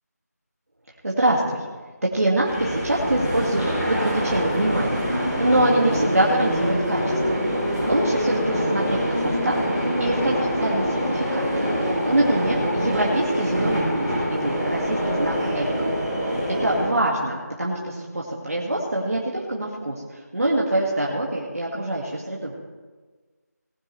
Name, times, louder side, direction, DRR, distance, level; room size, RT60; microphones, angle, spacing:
voice 1, 1.0-1.6 2.0-7.4 7.9-15.9 16.2-16.3 16.6-22.5, right 1 dB, 55° right, -4 dB, 2.1 m, -25 dB
sound 1, 2.4-16.9, equal, 15° left, 3.3 m, -25 dB
19.0 x 9.7 x 3.3 m, 1.3 s
figure-of-eight pair, 175°, 9 cm